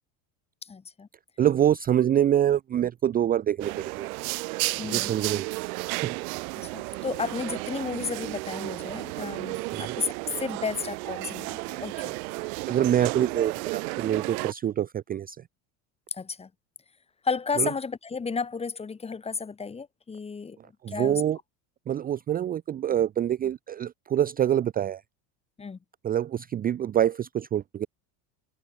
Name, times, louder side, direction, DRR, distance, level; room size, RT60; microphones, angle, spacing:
voice 1, 0.6-1.1 4.8-5.1 6.5-12.1 16.1-16.5 17.2-20.6 20.9-21.2 25.6-25.8, left 5 dB, 15° left, 1.5 m, -33 dB
voice 2, 1.4-4.1 4.9-5.5 5.9-6.2 9.7-9.9 12.6-15.4 17.6-17.7 20.8-21.4 21.9-25.0 26.0-27.9, right 10 dB, 20° right, 0.5 m, -25 dB
sound 1, 3.6-14.5, right 27 dB, 80° right, 1.4 m, -33 dB
supercardioid pair, 140°, 42 cm